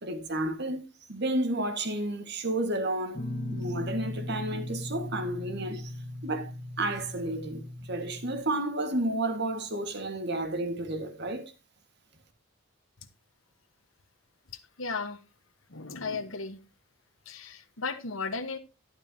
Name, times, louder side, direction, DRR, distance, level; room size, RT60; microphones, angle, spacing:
voice 1, 0.0-0.8 1.1-3.2 3.5-5.9 6.2-6.5 6.8-11.5, right 1 dB, 55° right, 1.9 m, -31 dB
Guitar, 3.1-8.4, left 1 dB, 35° left, 1.9 m, -38 dB
voice 2, 14.5-15.2 15.7-16.6 17.2-18.6, left 4 dB, 80° left, 1.5 m, -35 dB
12.0 x 11.0 x 2.9 m
head